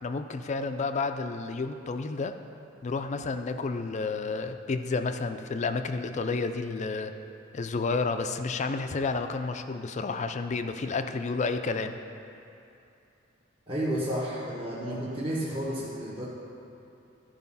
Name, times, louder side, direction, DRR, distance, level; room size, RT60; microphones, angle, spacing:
voice 1, 0.0-2.4 2.8-7.1 7.5-12.0, left 4 dB, 35° left, 8 dB, 0.4 m, -31 dB
voice 2, 13.7-16.2, equal, 25° right, -8 dB, 1.2 m, -31 dB
13.0 x 5.0 x 5.5 m, 2.8 s
head